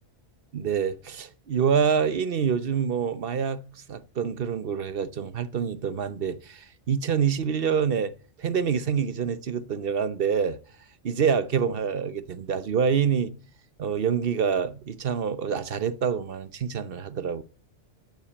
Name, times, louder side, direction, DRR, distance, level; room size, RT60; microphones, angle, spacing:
voice 1, 0.5-3.6 3.9-10.6 11.0-13.3 13.8-17.4, right 7 dB, 55° right, 1.0 m, -26 dB
11.5 x 8.8 x 8.3 m
omnidirectional pair, 1.2 m